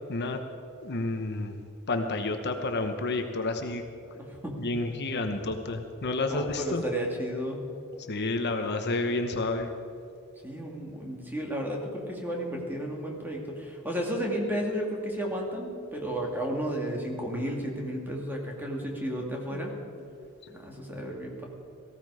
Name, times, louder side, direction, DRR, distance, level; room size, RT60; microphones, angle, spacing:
voice 1, 0.8-1.5 1.9-3.8 4.6-6.8 8.1-9.7, left 2 dB, 50° left, 6 dB, 1.0 m, -30 dB
voice 2, 4.1-4.6 6.2-7.6 10.4-19.7 20.5-21.5, equal, 10° right, -1 dB, 2.5 m, -33 dB
18.0 x 15.5 x 4.9 m, 2.5 s
head